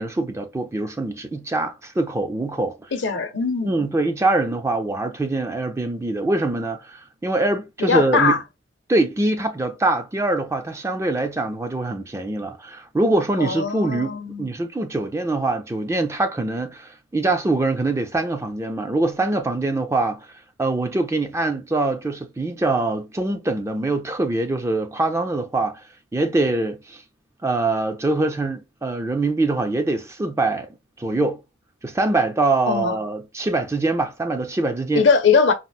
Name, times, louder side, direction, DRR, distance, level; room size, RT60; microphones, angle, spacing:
voice 1, 0.0-2.9 3.6-8.4 8.9-20.3 20.6-25.8 26.1-27.0 27.4-30.7 31.0-31.4 31.8-35.1, right 2 dB, 15° right, 0.4 m, -23 dB
voice 2, 2.9-3.9 7.8-8.4 13.4-14.5 32.7-33.0 34.9-35.5, left 5 dB, 60° left, 0.7 m, -20 dB
4.1 x 2.0 x 2.3 m
head